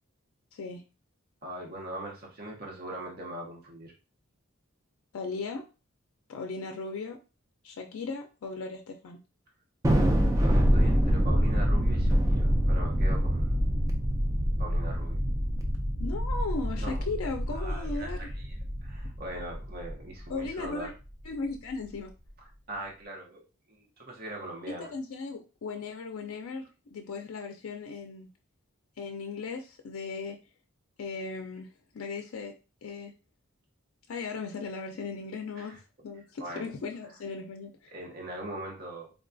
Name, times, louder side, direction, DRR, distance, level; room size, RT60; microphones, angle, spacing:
voice 1, 0.5-0.8 5.1-5.6 6.3-7.2 7.6-9.2 16.0-18.3 20.3-20.9 21.2-22.1 24.8-26.7 26.9-28.3 29.0-30.4 31.0-31.7 31.9-32.5 32.8-33.1 34.1-35.8 36.0-37.9, left 4 dB, 70° left, 3 dB, 0.4 m, -37 dB
voice 2, 1.4-3.9 9.9-13.6 14.6-15.2 16.8-17.0 17.5-18.5 18.8-20.9 22.4-24.9 35.6-35.8 36.4-36.7 37.9-39.1, right 1 dB, 45° right, 0 dB, 0.8 m, -41 dB
Thunder, 9.8-20.5, equal, 15° right, 0.4 m, -26 dB
3.6 x 2.3 x 2.5 m, 0.32 s
head